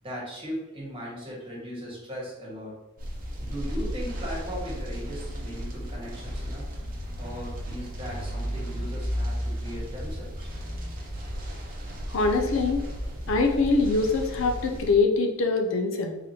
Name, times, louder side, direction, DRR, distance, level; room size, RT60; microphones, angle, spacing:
voice 1, 0.0-2.8 3.4-6.7 7.2-10.5 13.2-13.3, equal, 25° right, -5 dB, 1.4 m, -38 dB
sound 1, 3.0-14.9, equal, 45° right, 0.8 m, -34 dB
voice 2, 12.1-12.8 13.3-16.2, left 3 dB, 70° left, 4 dB, 0.5 m, -23 dB
3.8 x 3.4 x 2.8 m, 0.99 s
head